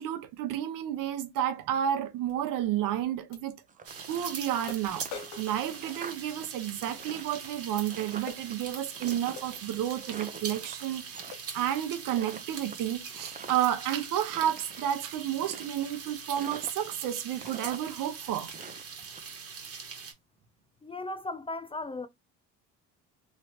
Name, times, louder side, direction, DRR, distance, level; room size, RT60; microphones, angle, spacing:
voice 1, 0.0-3.5 4.1-5.1 5.4-11.2 11.5-18.5, right 11 dB, 70° right, 0.9 m, -31 dB
Metal Bucket Hit and Fall, 2.3-2.4 3.3-3.4 4.1-4.2 4.7-6.6 8.3-8.5 9.4-9.6 10.3-10.5 10.9-11.0 11.3-11.6 12.2-12.4, left 5 dB, 90° left, 1.0 m, -45 dB
sound 1, 3.7-4.6 4.8-6.5 6.7-8.5 8.9-11.3 11.6-11.9 12.1-13.8 14.2-14.9 15.4-16.0 16.4-17.1 17.4-19.2, right 5 dB, 25° right, 0.6 m, -46 dB
sound 2, 3.8-20.1, right 6 dB, 40° right, 1.3 m, -42 dB
voice 2, 20.8-22.1, left 2 dB, 15° left, 0.4 m, -36 dB
3.1 x 3.0 x 2.7 m
supercardioid pair, 85°, 34 cm